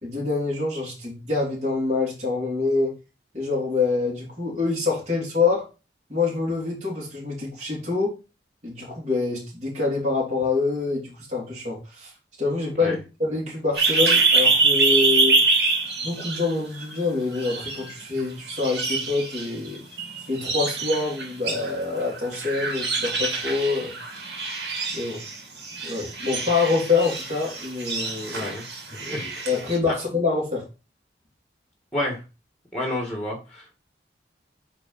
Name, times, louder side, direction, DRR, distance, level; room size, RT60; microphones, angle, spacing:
voice 1, 0.0-2.9 3.3-5.7 6.1-8.2 8.6-12.1 12.4-15.4 16.0-19.8 20.3-23.9 24.9-25.2 25.8-28.5 28.9-30.6, left 3 dB, 40° right, -5 dB, 3.2 m, -26 dB
sound 1, 13.7-16.9 17.3-18.2 18.5-29.8, right 3 dB, 75° right, 2.4 m, -25 dB
voice 2, 28.3-28.6 29.1-29.5 29.9-30.0 31.9-32.2 32.7-33.8, left 1 dB, 5° left, 0 dB, 1.7 m, -29 dB
9.4 x 3.7 x 4.1 m, 0.30 s
head